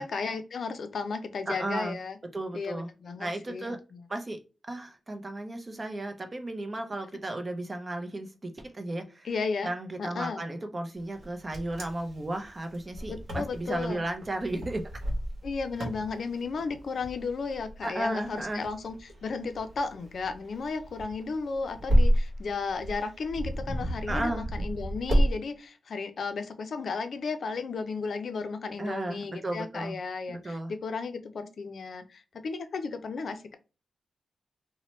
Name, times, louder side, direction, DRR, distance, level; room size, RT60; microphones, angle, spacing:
voice 1, 0.0-2.2 2.5-3.8 9.2-9.7 10.0-10.4 13.1-14.0 15.4-33.5, left 4 dB, 70° left, 0.4 m, -34 dB
voice 2, 1.5-2.0 2.3-2.9 3.2-3.8 4.1-4.4 4.7-9.3 9.6-14.8 17.8-18.6 24.1-24.5 28.8-30.0 30.3-30.7, right 1 dB, 30° right, 0.5 m, -34 dB
Wind, 11.1-25.3, equal, 55° right, 1.0 m, -31 dB
2.8 x 2.1 x 3.0 m
cardioid pair, 85°, 0 cm